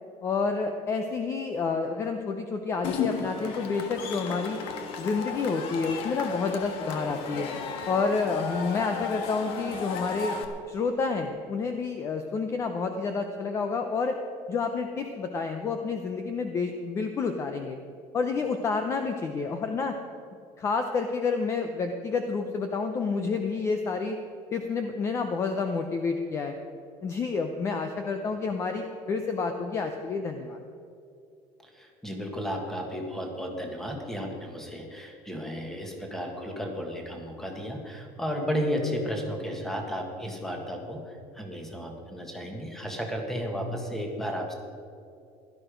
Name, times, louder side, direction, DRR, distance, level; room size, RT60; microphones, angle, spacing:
voice 1, 0.2-4.6 5.0-7.5 7.9-10.4 10.7-14.2 14.5-17.8 18.1-20.0 20.6-24.2 24.5-26.6 27.0-30.6, left 4 dB, 25° left, 6 dB, 0.7 m, -29 dB
Cheering / Crowd, 2.8-10.5, left 6 dB, 50° left, 1.4 m, -34 dB
voice 2, 31.7-44.5, equal, 5° left, 2 dB, 1.6 m, -33 dB
16.5 x 12.0 x 5.2 m, 2.5 s
cardioid pair, 175°, 12 cm